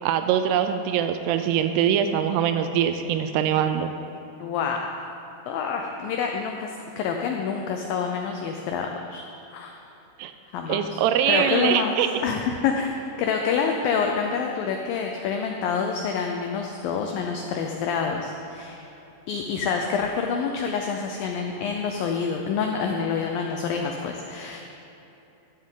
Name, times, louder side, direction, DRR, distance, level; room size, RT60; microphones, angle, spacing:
voice 1, 0.0-3.9 10.2-10.3 10.7-12.1, right 9 dB, 85° right, 8 dB, 2.5 m, -23 dB
voice 2, 4.4-5.1 5.5-9.2 9.5-9.8 10.5-18.8 19.3-24.6, left 6 dB, 90° left, 2 dB, 2.0 m, -27 dB
13.0 x 11.0 x 3.8 m, 2.9 s
omnidirectional pair, 4.9 m